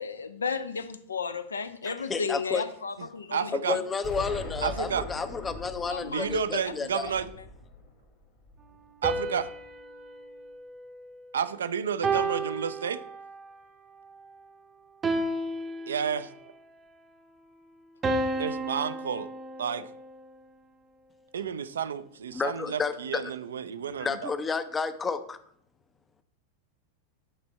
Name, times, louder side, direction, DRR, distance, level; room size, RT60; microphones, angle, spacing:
voice 1, 0.0-3.5 5.9-6.3 6.6-7.4, left 5 dB, 70° left, 11 dB, 0.5 m, -34 dB
voice 2, 1.9-2.6 3.5-7.1 22.3-23.3 24.0-25.4, left 5 dB, 15° left, 12 dB, 0.5 m, -31 dB
voice 3, 3.3-3.8 4.6-5.0 6.1-7.3 9.0-9.5 11.3-13.0 15.9-16.3 18.4-19.3 19.6-19.9 21.3-24.3, right 7 dB, 65° right, 13 dB, 0.4 m, -31 dB
Explosion, 4.0-8.9, left 2 dB, 45° left, 1.6 m, -41 dB
sound 1, 9.0-11.4 12.0-13.5 15.0-16.5 18.0-20.3, right 2 dB, 20° right, 0.7 m, -32 dB
8.8 x 3.5 x 4.2 m, 0.67 s
figure-of-eight pair, 90°, 0 cm